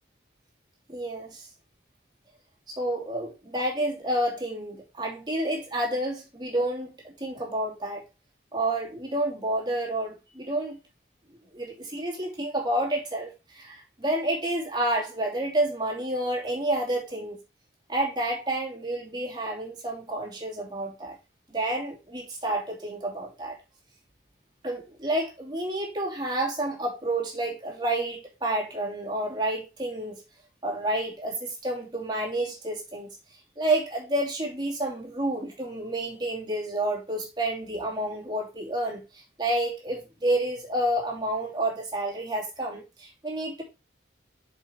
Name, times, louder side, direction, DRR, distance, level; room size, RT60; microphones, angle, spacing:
voice 1, 0.9-1.5 2.7-8.0 8.5-10.8 11.5-17.4 17.9-21.1 21.5-23.6 24.6-30.2 30.6-33.1 33.6-43.6, right 1 dB, 25° right, -3 dB, 2.7 m, -29 dB
6.7 x 5.1 x 4.5 m, 0.28 s
head